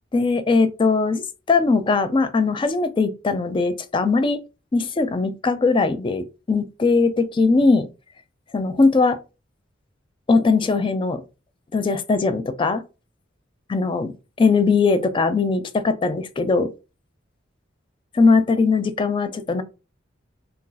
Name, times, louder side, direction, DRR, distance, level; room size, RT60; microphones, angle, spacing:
voice 1, 0.1-4.4 4.7-7.9 8.5-9.2 10.3-11.2 11.7-12.8 13.7-14.1 14.4-16.7 18.1-19.6, left 4 dB, 25° left, 0.3 m, -20 dB
2.6 x 2.3 x 3.8 m
head